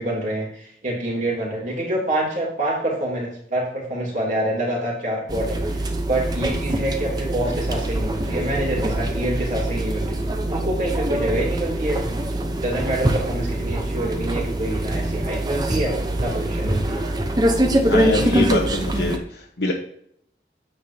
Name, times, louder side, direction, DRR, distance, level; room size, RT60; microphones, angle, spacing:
voice 1, 0.0-10.1 10.5-12.1 12.5-15.9 16.2-17.0, right 1 dB, 45° right, -2 dB, 3.1 m, -26 dB
sound 1, 5.3-19.2, right 1 dB, 25° right, 0.8 m, -24 dB
voice 2, 17.9-19.7, left 2 dB, 90° left, -1 dB, 1.1 m, -24 dB
9.4 x 7.2 x 2.8 m, 0.69 s
head